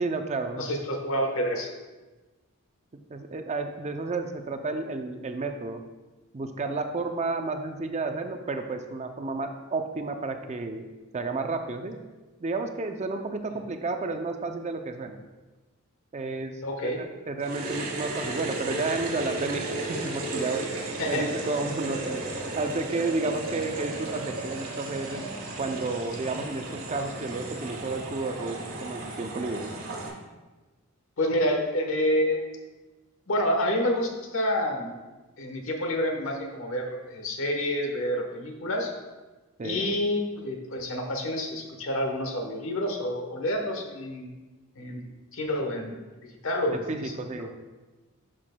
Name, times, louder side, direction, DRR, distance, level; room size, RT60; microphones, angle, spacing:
voice 1, 0.0-0.6 3.1-5.8 6.3-12.0 12.4-15.2 16.1-16.6 16.8-20.6 21.1-22.2 22.6-25.2 25.6-29.7 39.6-39.9 46.7-47.5, right 3 dB, 30° right, 6 dB, 0.5 m, -31 dB
voice 2, 0.6-1.7 16.6-17.0 21.0-21.3 31.2-32.4 33.3-34.9 35.4-38.9 39.6-44.3 44.8-45.0 45.3-46.0 46.4-47.1, left 1 dB, 65° left, 3 dB, 1.1 m, -28 dB
sound 1, 17.4-30.1, right 2 dB, 80° right, 1.6 m, -34 dB
11.0 x 5.8 x 2.2 m, 1.2 s
head